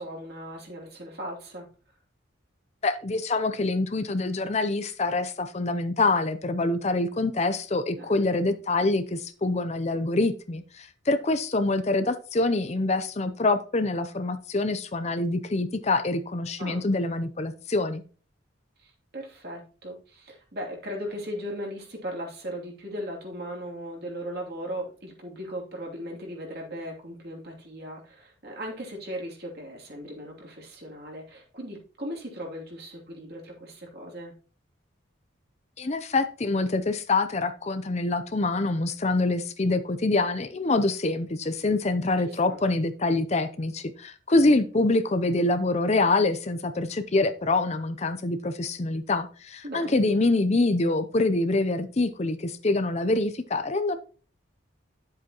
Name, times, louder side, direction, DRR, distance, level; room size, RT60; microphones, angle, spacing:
voice 1, 0.0-1.7 7.9-8.3 16.6-16.9 18.8-34.3 42.2-42.6 49.6-50.3, equal, 50° right, -1 dB, 2.8 m, -38 dB
voice 2, 2.8-18.0 35.8-54.0, left 2 dB, 35° left, 10 dB, 0.5 m, -25 dB
10.5 x 7.5 x 2.9 m, 0.38 s
head